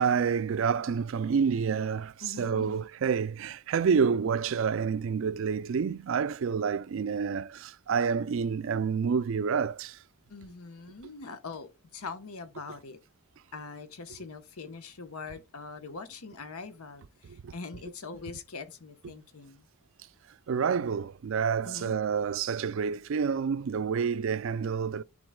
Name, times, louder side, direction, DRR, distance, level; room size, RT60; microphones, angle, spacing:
voice 1, 0.0-10.0 17.2-17.5 20.5-25.0, right 6 dB, 60° right, 0.3 m, -28 dB
voice 2, 2.2-2.9 10.3-13.0 13.5-19.7 21.6-21.9, left 4 dB, 85° left, 1.0 m, -43 dB
10.5 x 3.9 x 2.3 m
head